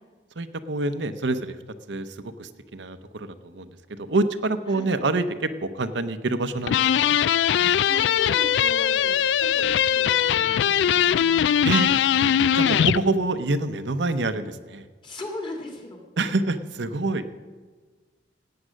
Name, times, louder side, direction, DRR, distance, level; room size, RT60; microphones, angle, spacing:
voice 1, 0.4-1.6 1.9-7.2 11.6-11.9 12.5-14.8 16.2-17.2, right 2 dB, 75° right, 9 dB, 0.8 m, -26 dB
sound 1, 6.7-13.0, left 9 dB, 70° left, 0.3 m, -21 dB
voice 2, 7.5-11.5 15.0-16.0, left 1 dB, 25° left, 2 dB, 2.2 m, -38 dB
16.0 x 8.8 x 6.4 m, 1.4 s
head